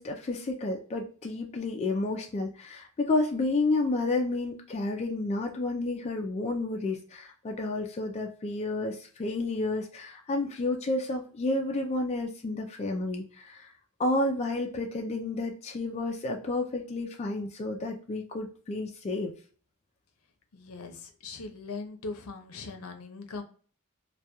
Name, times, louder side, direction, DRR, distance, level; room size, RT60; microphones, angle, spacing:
voice 1, 0.0-13.7 14.0-19.3, left 2 dB, 30° left, 2 dB, 0.3 m, -31 dB
voice 2, 20.5-23.4, left 3 dB, 75° left, 5 dB, 0.6 m, -40 dB
2.2 x 2.2 x 2.7 m, 0.43 s
head